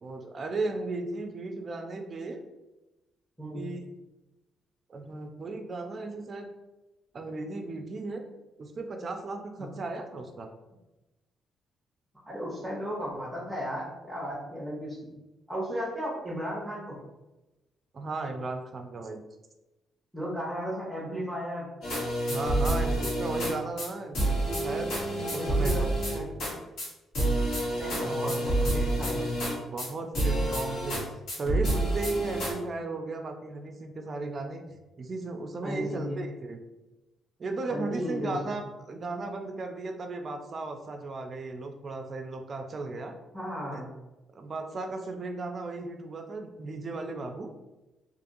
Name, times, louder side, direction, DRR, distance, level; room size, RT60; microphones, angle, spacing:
voice 1, 0.0-2.4 3.5-3.9 4.9-6.5 7.1-8.2 8.6-10.5 17.9-19.2 22.3-24.9 25.3-25.9 27.9-28.4 29.2-29.3 29.7-31.0 31.3-34.6 35.0-36.6 37.4-38.6 38.9-43.1 43.7-43.8 44.3-47.5, right 3 dB, 45° right, 5 dB, 0.4 m, -35 dB
voice 2, 3.4-3.7 9.6-9.7 12.3-15.0 15.5-17.0 20.1-21.7 25.1-26.5 27.6-29.4 35.6-36.2 37.7-38.6 43.3-43.9, equal, 10° right, -7 dB, 0.8 m, -35 dB
sound 1, 21.8-23.5 23.8-23.9 24.1-26.5 26.8-26.9 27.1-29.9 30.1-31.0 31.3-32.5, right 1 dB, 70° left, 1.3 m, -28 dB
2.7 x 2.5 x 2.6 m, 1.0 s
cardioid pair, 90°, 0 cm